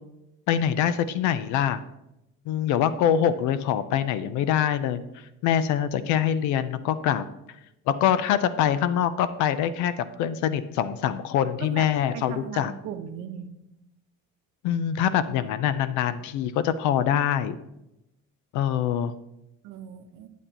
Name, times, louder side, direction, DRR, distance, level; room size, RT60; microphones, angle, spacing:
voice 1, 0.5-1.8 2.5-7.2 7.9-12.7 14.6-17.6 18.5-19.1, left 9 dB, 65° left, 13 dB, 0.6 m, -24 dB
voice 2, 12.1-13.5 19.6-20.3, right 9 dB, 65° right, 6 dB, 0.9 m, -37 dB
8.9 x 8.3 x 2.9 m, 0.89 s
cardioid pair, 165°, 32 cm